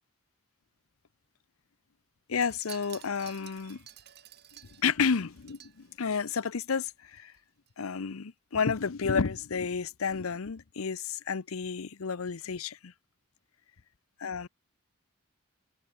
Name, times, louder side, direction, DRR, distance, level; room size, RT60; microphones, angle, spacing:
voice 1, 2.3-3.8 4.8-7.3 7.8-12.9 14.2-14.5, left 5 dB, 85° left, 0.7 m, -31 dB
Wind chime, 2.3-6.8 7.1-7.4 7.7-7.8, right 12 dB, 50° right, 2.1 m, -52 dB
open air
head